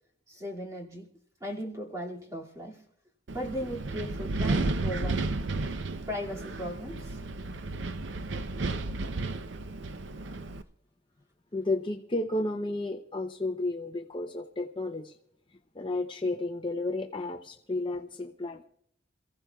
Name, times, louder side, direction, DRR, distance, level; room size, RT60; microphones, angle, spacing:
voice 1, 0.3-1.1 1.4-2.9 3.3-5.3 6.1-7.2, equal, 15° right, 2.3 m, -37 dB
Wind, 3.3-10.6, right 2 dB, 65° right, 0.6 m, -33 dB
voice 2, 11.5-15.2 15.5-18.6, left 2 dB, 25° left, 0.6 m, -32 dB
27.5 x 15.5 x 2.3 m
head